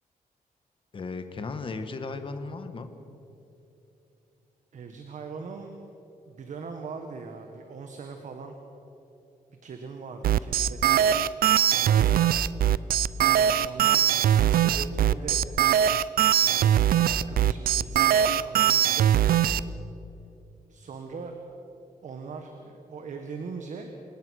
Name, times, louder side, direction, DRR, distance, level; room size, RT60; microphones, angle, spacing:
voice 1, 0.9-2.9 11.6-12.2, left 3 dB, 35° left, 8 dB, 1.5 m, -37 dB
voice 2, 4.7-5.8 6.3-8.6 9.6-11.2 11.6-12.2 13.2-15.4 16.4-19.6 20.7-21.4 22.0-23.9, right 5 dB, 55° right, 5 dB, 1.6 m, -41 dB
sound 1, 10.2-19.6, right 10 dB, 80° right, 0.5 m, -21 dB
28.0 x 17.0 x 6.5 m, 2.8 s
wide cardioid pair, 175°, 15 cm